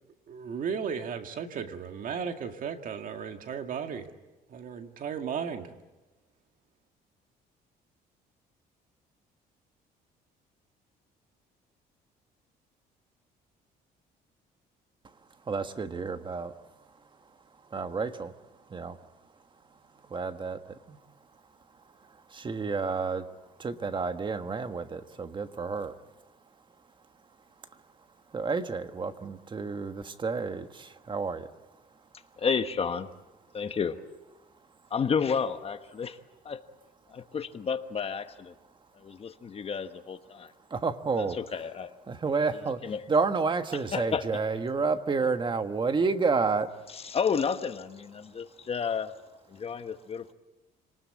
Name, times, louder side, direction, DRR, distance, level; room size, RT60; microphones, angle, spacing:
voice 1, 0.3-4.1 4.5-5.7, right 6 dB, 55° right, 6 dB, 2.1 m, -35 dB
voice 2, 15.4-16.5 17.7-18.3 18.7-19.0 20.0-21.0 22.0-23.3 23.6-26.0 28.3-31.5 40.7-41.4 42.1-46.7, right 4 dB, 30° right, 9 dB, 1.4 m, -30 dB
voice 3, 32.4-33.1 33.5-34.0 34.9-36.2 36.4-36.6 37.1-38.5 38.9-40.5 41.2-42.0 42.8-43.0 43.9-44.4 46.9-49.1 49.5-50.3, left 6 dB, 35° left, 9 dB, 1.2 m, -31 dB
27.0 x 19.5 x 8.6 m, 1.1 s
cardioid pair, 110°, 17 cm